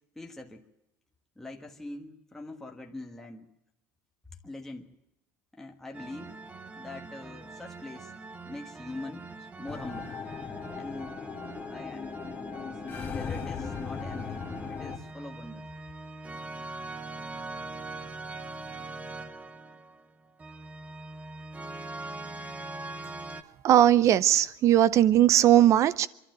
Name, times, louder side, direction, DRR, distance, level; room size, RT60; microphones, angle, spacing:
voice 1, 0.1-0.6 1.3-3.5 4.4-4.9 5.5-6.3 6.8-8.1 8.5-10.1 10.7-11.2 11.7-15.7, left 2 dB, 5° left, 1.5 m, -43 dB
sound 1, 5.9-23.4, right 3 dB, 20° right, 1.1 m, -42 dB
sound 2, 9.7-15.0, left 6 dB, 25° left, 1.9 m, -38 dB
voice 2, 23.6-26.1, right 11 dB, 45° right, 0.7 m, -19 dB
25.0 x 12.0 x 9.1 m
supercardioid pair, 115°, 7 cm